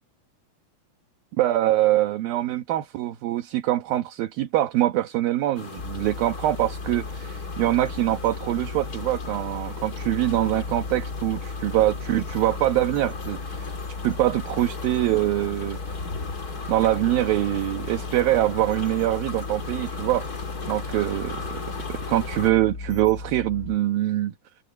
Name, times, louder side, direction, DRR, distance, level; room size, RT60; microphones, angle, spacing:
voice 1, 1.4-13.7 14.0-15.8 16.7-20.3 20.7-21.6 21.9-24.3, right 15 dB, 75° right, 2.9 m, -24 dB
sound 1, 5.5-22.5, left 4 dB, 30° left, 2.3 m, -37 dB
sound 2, 5.8-23.8, left 4 dB, 50° left, 1.0 m, -36 dB
omnidirectional pair, 4.5 m